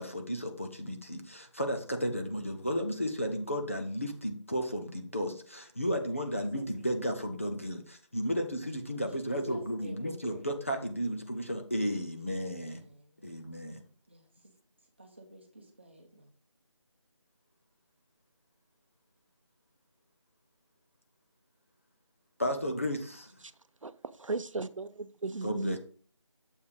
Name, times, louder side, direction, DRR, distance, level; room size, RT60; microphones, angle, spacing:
voice 1, 0.0-12.9 13.2-13.8 22.4-23.4 25.4-25.8, equal, 25° left, 4 dB, 0.7 m, -33 dB
voice 2, 6.3-7.5 8.7-8.9 9.2-10.5 12.1-13.5 14.1-14.5 15.0-16.3, right 2 dB, 20° right, 2 dB, 1.0 m, -53 dB
voice 3, 24.2-25.8, right 3 dB, 85° right, 13 dB, 0.7 m, -36 dB
7.2 x 4.4 x 4.9 m, 0.42 s
figure-of-eight pair, 175°, 16 cm